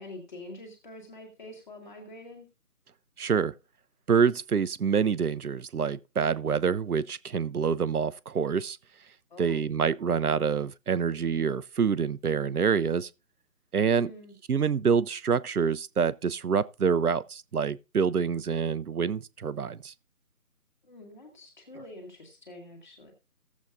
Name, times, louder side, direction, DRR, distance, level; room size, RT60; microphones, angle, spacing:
voice 1, 0.0-2.5 9.3-9.6 13.9-14.3 20.8-23.1, left 2 dB, 30° left, 2.1 m, -46 dB
voice 2, 3.2-3.5 4.1-8.8 9.4-13.1 13.7-14.1 14.5-19.9, right 6 dB, 70° right, 0.7 m, -26 dB
17.5 x 7.3 x 2.5 m
figure-of-eight pair, 160°, 47 cm